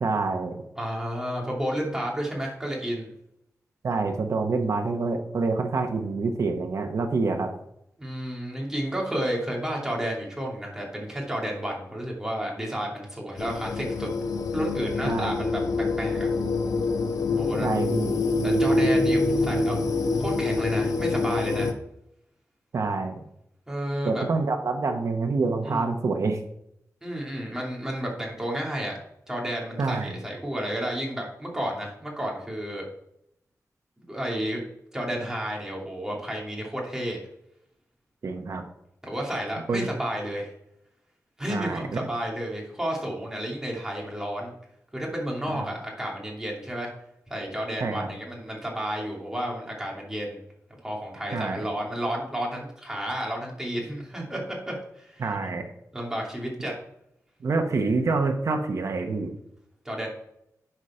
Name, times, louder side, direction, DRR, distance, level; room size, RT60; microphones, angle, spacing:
voice 1, 0.0-0.6 3.8-7.5 15.1-15.3 17.6-18.2 22.7-23.2 24.0-26.4 29.8-30.2 38.2-38.6 39.7-39.9 41.5-41.8 45.5-45.7 47.8-48.1 51.3-51.6 55.2-55.7 57.4-59.3, right 3 dB, 65° right, 4 dB, 1.0 m, -27 dB
voice 2, 0.8-3.1 8.0-14.1 14.5-15.6 16.0-16.3 17.4-17.7 18.4-19.8 20.2-21.7 23.7-24.2 25.6-25.9 27.0-29.0 29.3-32.8 34.1-34.6 34.9-37.2 39.0-40.5 41.4-44.5 44.9-46.9 47.3-50.4 50.8-55.5 55.9-56.7 59.8-60.1, equal, 10° right, -2 dB, 2.8 m, -31 dB
sound 1, 13.4-21.7, left 3 dB, 80° left, 0.9 m, -25 dB
11.0 x 5.1 x 4.4 m, 0.78 s
wide cardioid pair, 135°, 6 cm